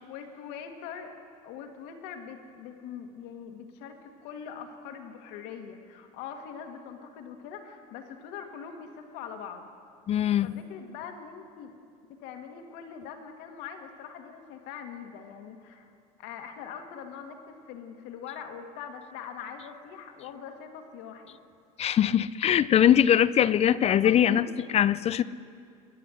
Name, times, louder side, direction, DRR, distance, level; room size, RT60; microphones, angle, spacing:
voice 1, 0.0-1.2 1.4-9.7 10.4-11.7 12.2-15.9 16.2-21.4 23.8-24.7, left 7 dB, 70° left, 1.9 m, -42 dB
voice 2, 10.1-10.6 21.8-24.5 24.7-25.2, left 10 dB, 35° left, 0.5 m, -22 dB
22.0 x 7.8 x 7.9 m
supercardioid pair, 95°, 18 cm